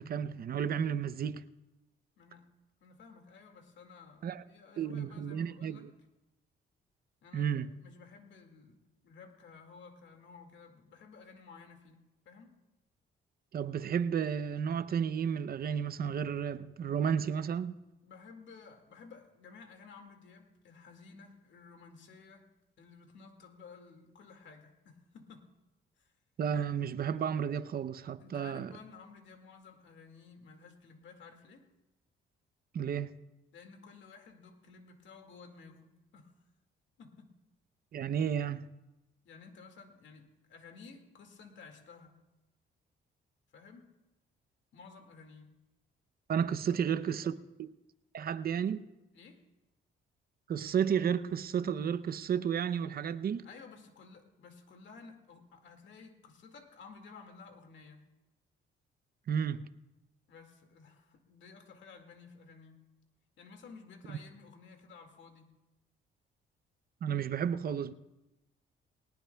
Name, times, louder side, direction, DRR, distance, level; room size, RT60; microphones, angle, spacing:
voice 1, 0.0-1.5 4.2-4.4 4.8-5.9 7.3-7.7 13.5-17.8 26.4-28.7 32.7-33.2 37.9-38.7 46.3-47.3 47.6-47.7 48.1-48.8 50.5-53.4 59.3-59.7 64.1-64.2 67.0-67.9, right 8 dB, 50° right, 0.7 m, -32 dB
voice 2, 2.2-2.5 2.8-5.9 7.2-12.5 18.0-22.5 22.8-25.5 26.0-26.1 28.2-31.7 33.5-36.3 37.0-37.4 39.2-42.2 43.5-43.9 44.7-45.6 46.8-47.4 49.1-49.4 53.4-58.1 60.3-62.9 63.4-65.6, left 5 dB, 70° left, 2.1 m, -54 dB
20.0 x 19.0 x 2.3 m
cardioid pair, 90°, 20 cm